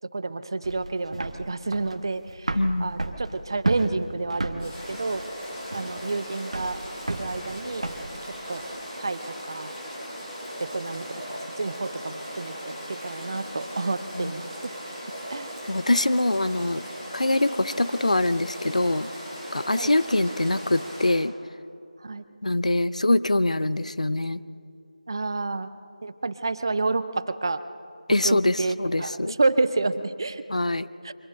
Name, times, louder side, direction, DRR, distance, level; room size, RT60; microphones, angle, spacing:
voice 1, 0.1-5.2 5.7-6.8 7.1-7.8 8.5-8.6 9.0-9.7 10.6-15.0 15.3-15.5 19.8-19.9 22.0-22.2 25.1-25.7 26.0-27.6 28.2-30.4 31.0-31.1, right 3 dB, 35° right, 13 dB, 0.7 m, -29 dB
sound 1, 0.6-8.1, right 2 dB, 50° right, 1.5 m, -33 dB
voice 2, 2.5-2.9 14.2-14.3 15.7-16.8 17.1-19.1 19.5-21.3 22.4-24.4 28.1-29.3 30.5-30.9, left 2 dB, 65° left, 15 dB, 0.7 m, -24 dB
sound 2, 4.6-21.1, equal, 15° left, 6.4 m, -38 dB
24.5 x 19.0 x 6.6 m, 2.5 s
figure-of-eight pair, 165°, 4 cm